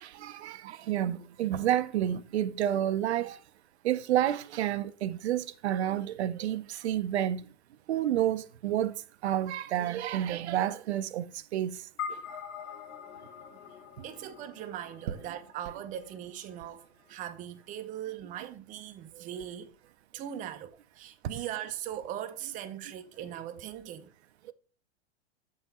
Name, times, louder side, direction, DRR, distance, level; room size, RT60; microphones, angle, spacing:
voice 1, 0.0-3.4 3.8-7.4 7.9-8.9 9.2-11.3 11.5-11.7, right 11 dB, 80° right, 0.6 m, -29 dB
sound 1, 12.0-16.5, left 7 dB, 45° left, 1.3 m, -43 dB
voice 2, 14.0-19.7 20.1-24.1, right 11 dB, 25° right, 0.5 m, -40 dB
7.0 x 3.7 x 4.1 m
hypercardioid pair, 125°, 32 cm